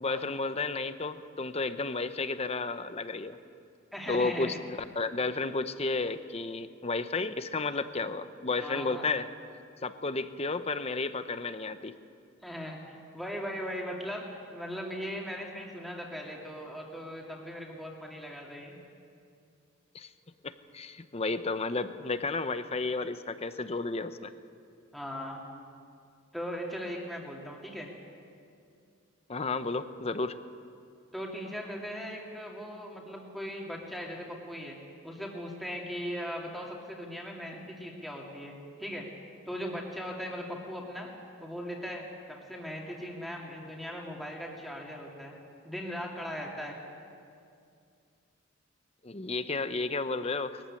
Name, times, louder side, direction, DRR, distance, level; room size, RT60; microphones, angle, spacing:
voice 1, 0.0-3.4 4.1-4.5 4.9-9.3 9.8-11.9 19.9-20.1 20.4-24.3 29.3-30.3 49.0-50.6, left 3 dB, 30° left, 11 dB, 0.7 m, -32 dB
voice 2, 3.9-4.6 8.6-9.1 12.4-18.8 24.9-25.4 26.3-27.9 31.1-34.8 35.0-38.5 38.8-39.1 39.5-41.1 41.4-45.3 45.6-46.8, equal, ahead, -2 dB, 2.4 m, -39 dB
21.0 x 15.0 x 9.9 m, 2.4 s
head